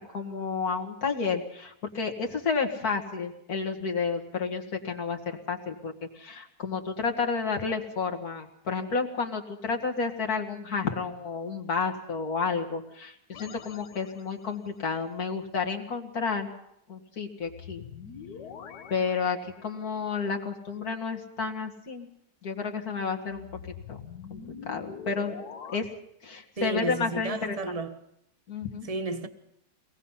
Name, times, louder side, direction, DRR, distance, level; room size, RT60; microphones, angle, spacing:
voice 1, 0.1-16.5 16.9-17.8 18.9-22.1 22.4-23.5 23.9-24.0 24.3-25.3 25.7-25.9 26.2-27.6 28.5-28.9, left 5 dB, 70° left, 2.6 m, -31 dB
sound 1, 13.3-14.7 17.4-20.1 23.3-25.8, left 7 dB, 85° left, 1.7 m, -44 dB
voice 2, 26.6-28.0 28.9-29.3, right 3 dB, 25° right, 1.1 m, -32 dB
24.0 x 19.0 x 5.7 m
omnidirectional pair, 1.7 m